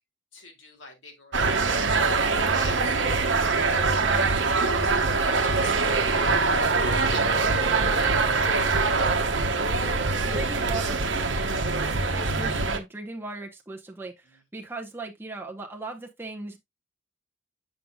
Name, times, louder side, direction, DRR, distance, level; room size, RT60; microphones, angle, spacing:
voice 1, 0.3-3.2 3.5-7.3 7.7-9.1 11.5-12.2, left 3 dB, 80° left, 2.4 m, -46 dB
sound 1, 1.3-12.8, right 4 dB, 75° right, 1.0 m, -23 dB
voice 2, 4.0-4.3 10.2-11.0 12.1-16.6, right 3 dB, 10° right, 0.9 m, -37 dB
7.7 x 6.4 x 2.3 m
head